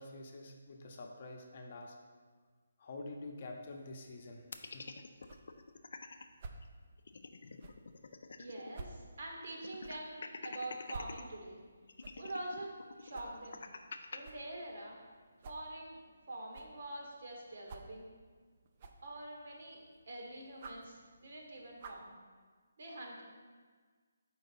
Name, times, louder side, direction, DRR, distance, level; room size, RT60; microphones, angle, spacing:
voice 1, 0.0-2.0 2.8-4.9, left 2 dB, 45° left, 1 dB, 0.7 m, -47 dB
sound 1, 4.1-22.1, right 3 dB, 35° right, 0.4 m, -55 dB
sound 2, 4.5-6.2 6.6-6.7 7.0-8.8 9.0-9.1 9.6-11.2 11.9-14.2, left 4 dB, 65° left, 0.4 m, -47 dB
voice 2, 8.4-11.6 12.2-13.6 14.1-15.0 15.4-16.0 16.3-18.1 19.0-19.8 20.1-22.1 22.8-23.2, right 1 dB, 60° right, -1 dB, 1.3 m, -45 dB
4.5 x 3.8 x 5.5 m, 1.5 s
hypercardioid pair, 160°, 0 cm